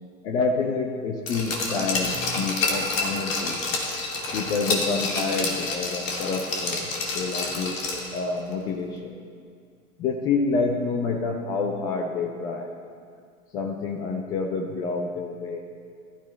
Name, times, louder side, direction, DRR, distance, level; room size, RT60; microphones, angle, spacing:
voice 1, 0.2-3.6 4.3-6.8 7.1-9.2 10.0-12.7 13.5-15.6, left 4 dB, 10° left, 2 dB, 0.3 m, -28 dB
Glass, 1.3-8.2 8.5-8.6, left 3 dB, 65° left, 2.8 m, -28 dB
21.0 x 13.5 x 3.2 m, 2.2 s
figure-of-eight pair, 90°, 43 cm